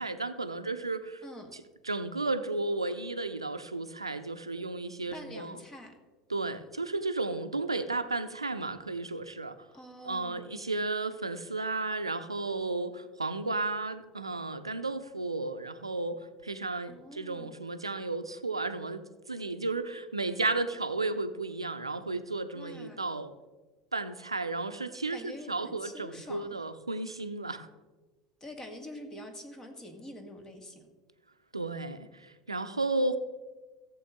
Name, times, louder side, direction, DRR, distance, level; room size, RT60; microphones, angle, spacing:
voice 1, 0.0-1.2 1.5-5.6 6.3-9.5 10.0-19.0 19.3-23.3 23.9-27.7 31.5-33.2, right 3 dB, 90° right, 10 dB, 0.6 m, -33 dB
voice 2, 1.2-1.5 5.1-5.9 9.7-10.5 16.9-17.5 22.5-23.0 25.1-26.6 28.4-30.9, left 1 dB, 20° left, 5 dB, 2.1 m, -46 dB
16.0 x 7.6 x 3.7 m, 1.2 s
figure-of-eight pair, 75°, 3 cm